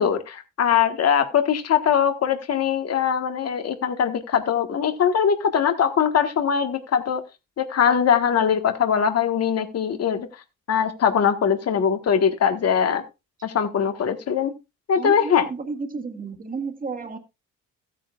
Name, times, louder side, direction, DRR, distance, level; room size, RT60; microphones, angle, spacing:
voice 1, 0.0-7.2 7.6-10.3 10.7-13.0 13.4-14.5 14.9-15.5, left 7 dB, 55° left, 8 dB, 1.5 m, -21 dB
voice 2, 15.0-17.2, right 4 dB, 30° right, 6 dB, 2.0 m, -32 dB
15.0 x 9.1 x 2.4 m, 0.25 s
cardioid pair, 90°, 30 cm